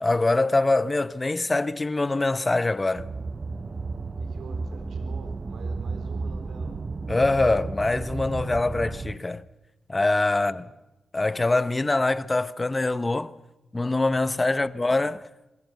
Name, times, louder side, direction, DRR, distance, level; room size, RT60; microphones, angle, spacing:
voice 1, 0.0-3.1 7.1-9.4 9.9-10.6 11.1-13.3 13.7-15.2, left 2 dB, 25° left, 0.9 m, -24 dB
sound 1, 3.0-9.2, right 3 dB, 40° right, 1.0 m, -33 dB
voice 2, 4.2-6.8 10.5-10.6 14.5-14.6, right 4 dB, 90° right, 3.8 m, -46 dB
25.5 x 20.0 x 8.1 m
cardioid pair, 75°, 0 cm